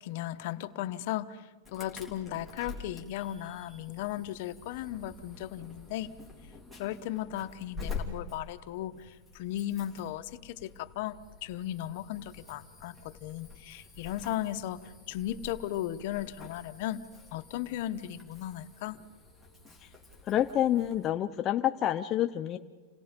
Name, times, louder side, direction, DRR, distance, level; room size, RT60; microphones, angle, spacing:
voice 1, 0.0-6.1 6.8-17.0 17.3-19.0, left 13 dB, 55° left, 10 dB, 0.9 m, -36 dB
Insect / Alarm, 1.6-21.1, left 4 dB, 5° right, 3.0 m, -47 dB
voice 2, 20.3-22.6, left 11 dB, 25° left, 6 dB, 0.6 m, -28 dB
29.5 x 18.0 x 5.2 m, 1.4 s
supercardioid pair, 155°, 0 cm